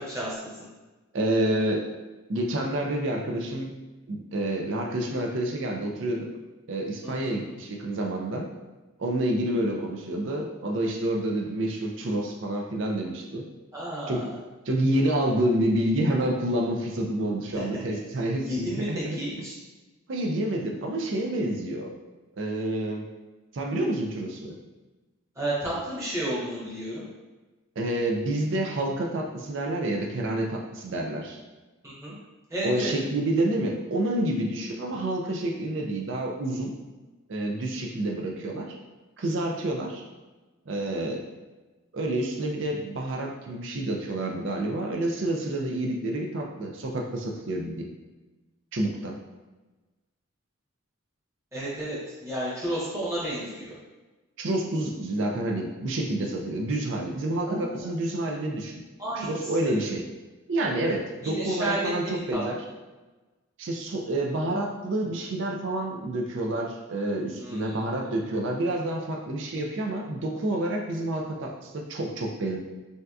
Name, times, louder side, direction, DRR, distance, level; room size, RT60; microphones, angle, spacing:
voice 1, 0.1-0.4 7.0-7.4 13.7-14.3 17.6-17.7 18.5-19.6 25.4-27.0 31.8-32.1 32.5-32.9 51.5-53.7 57.4-57.9 59.0-59.8 61.2-62.4 67.4-67.8, right 1 dB, 15° right, -8 dB, 0.9 m, -32 dB
voice 2, 1.1-1.8 2.3-3.7 4.1-6.3 6.7-8.5 9.0-13.4 14.1-14.2 14.7-19.2 20.1-21.9 22.4-23.0 23.5-24.5 27.8-31.4 32.6-36.7 37.3-38.7 39.2-40.0 40.7-41.2 41.9-47.9 48.7-49.2 54.4-58.8 59.2-60.0 60.5-62.6 63.6-72.6, right 1 dB, 60° right, 1 dB, 0.4 m, -28 dB
3.3 x 2.7 x 2.3 m, 1.2 s
head